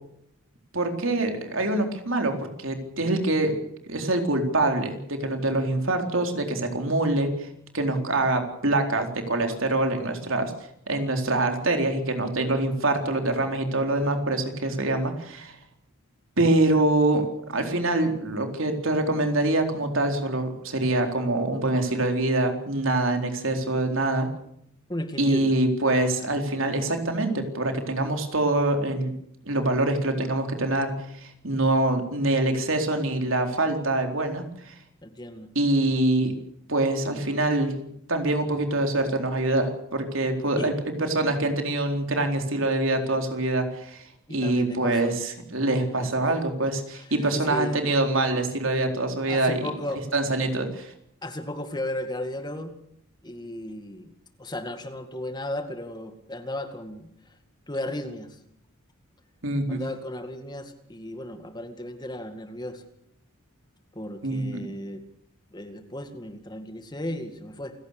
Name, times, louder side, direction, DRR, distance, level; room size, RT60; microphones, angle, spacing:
voice 1, 0.7-3.6 3.9-7.5 7.7-10.5 10.9-15.6 16.4-24.3 25.2-29.1 29.5-34.7 35.6-36.3 36.7-37.7 38.1-49.6 50.1-50.9 59.4-59.8 64.2-64.6, right 2 dB, 65° right, 5 dB, 4.1 m, -25 dB
voice 2, 24.9-25.5 35.0-35.5 40.6-40.7 44.3-45.2 46.0-46.1 46.9-47.8 49.3-50.0 51.2-52.7 53.2-54.1 54.4-57.1 57.7-58.4 59.7-62.8 63.9-65.0 65.5-67.7, left 1 dB, 20° left, 7 dB, 2.1 m, -35 dB
28.5 x 16.5 x 6.7 m, 0.74 s
head